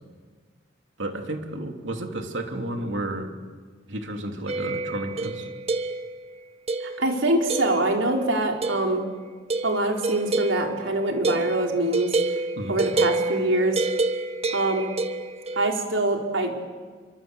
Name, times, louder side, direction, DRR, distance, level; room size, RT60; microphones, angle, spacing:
voice 1, 1.0-3.3 3.9-5.5 12.6-12.8, right 1 dB, 70° right, 4 dB, 3.2 m, -32 dB
sound 1, 4.5-6.2 6.7-7.1 7.5-8.1 8.6-9.0 9.5-15.7, right 2 dB, 35° right, 1.3 m, -28 dB
voice 2, 7.0-9.1 9.6-12.1 12.7-13.8 14.5-14.9 15.6-16.6, right 2 dB, 85° right, 1 dB, 4.3 m, -24 dB
29.0 x 24.5 x 8.1 m, 1.5 s
head